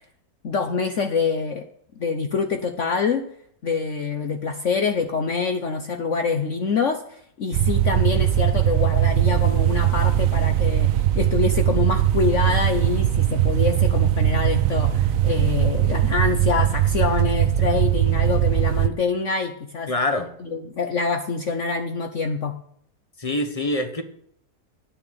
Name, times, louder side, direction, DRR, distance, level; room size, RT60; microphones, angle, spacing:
voice 1, 0.4-1.6 2.0-3.2 3.6-19.9 20.4-22.6, left 5 dB, 50° left, 5 dB, 1.1 m, -25 dB
sound 1, 7.5-18.9, right 12 dB, 65° right, 0.8 m, -20 dB
voice 2, 19.9-20.3 23.2-24.0, left 1 dB, 25° left, 8 dB, 1.1 m, -24 dB
9.7 x 6.9 x 8.8 m, 0.67 s
omnidirectional pair, 1.9 m